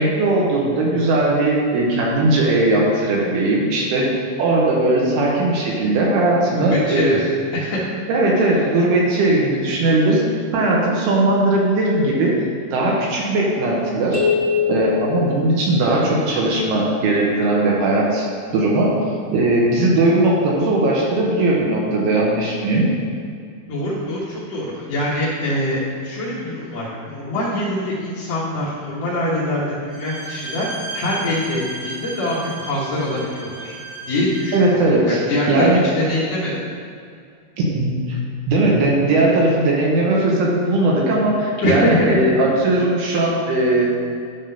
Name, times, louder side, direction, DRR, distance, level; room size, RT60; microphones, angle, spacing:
voice 1, 0.0-7.2 8.1-10.2 10.5-12.3 12.7-14.3 14.7-18.3 18.5-19.0 19.3-22.9 34.5-35.2 35.5-35.8 37.6-38.2 38.5-43.9, right 2 dB, 75° right, -3 dB, 2.8 m, -18 dB
voice 2, 6.5-7.2 7.5-7.8 9.7-9.8 23.7-33.7 34.1-35.7 35.9-36.6 41.6-42.2, left 1 dB, 75° left, -7 dB, 1.5 m, -24 dB
sound 1, 14.1-16.1, left 6 dB, 50° left, 1.2 m, -23 dB
Bowed string instrument, 29.9-34.7, right 2 dB, 55° right, 2.7 m, -34 dB
10.5 x 3.6 x 5.6 m, 2.2 s
omnidirectional pair, 4.8 m